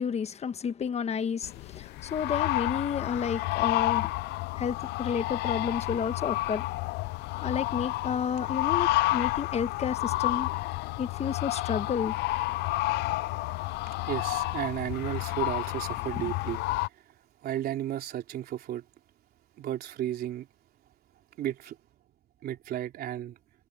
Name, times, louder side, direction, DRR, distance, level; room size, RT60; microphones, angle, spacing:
voice 1, 0.0-4.1 4.6-6.6 7.4-10.5 11.0-12.1, left 7 dB, 40° left, 1.3 m, -31 dB
sound 1, 1.4-16.9, left 19 dB, 85° left, 0.5 m, -30 dB
voice 2, 14.1-16.6 17.4-18.8 19.6-20.5 21.4-21.8 22.4-23.3, right 12 dB, 65° right, 3.5 m, -33 dB
cardioid pair, 110°, 17 cm